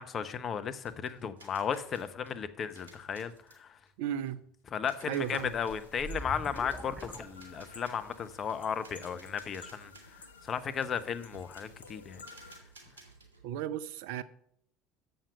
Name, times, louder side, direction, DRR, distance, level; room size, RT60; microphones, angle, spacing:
voice 1, 0.0-3.8 4.7-9.9 10.4-12.2, left 7 dB, 40° left, 0.8 m, -35 dB
sound 1, 0.8-13.5, right 2 dB, 85° right, 2.1 m, -57 dB
voice 2, 4.0-4.4 5.1-5.5 13.4-14.2, right 10 dB, 65° right, 0.5 m, -34 dB
sound 2, 5.2-12.6, left 4 dB, 80° left, 0.7 m, -54 dB
sound 3, 6.0-8.0, right 2 dB, 5° right, 0.8 m, -44 dB
7.3 x 6.5 x 6.9 m
figure-of-eight pair, 65°, 0 cm